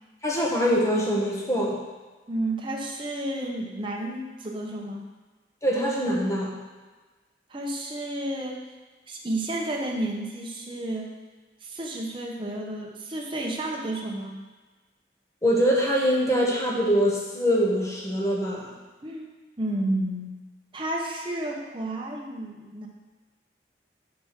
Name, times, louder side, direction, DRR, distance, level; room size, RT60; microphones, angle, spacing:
voice 1, 0.2-1.8 5.6-6.5 15.4-18.7, equal, 20° left, -4 dB, 1.4 m, -23 dB
voice 2, 2.3-5.0 7.5-8.6 9.1-11.1 11.6-14.3 19.0-20.4 20.7-22.9, right 1 dB, 30° right, -1 dB, 1.0 m, -31 dB
5.9 x 5.0 x 5.8 m, 1.3 s
head